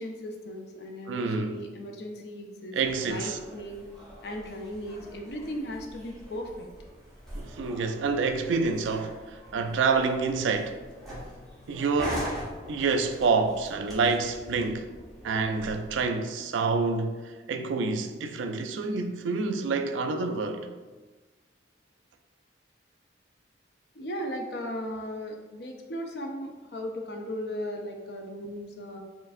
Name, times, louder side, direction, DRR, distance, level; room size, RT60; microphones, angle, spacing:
voice 1, 0.0-3.8 4.2-6.7 23.9-29.0, equal, 60° left, 0.6 m, -37 dB
voice 2, 1.1-1.6 2.7-3.4 7.3-10.8 11.7-12.3 12.7-14.9 15.2-20.7, right 4 dB, 90° right, 0.4 m, -28 dB
sound 1, 2.8-16.1, right 1 dB, ahead, 1.1 m, -42 dB
4.5 x 3.2 x 2.5 m
head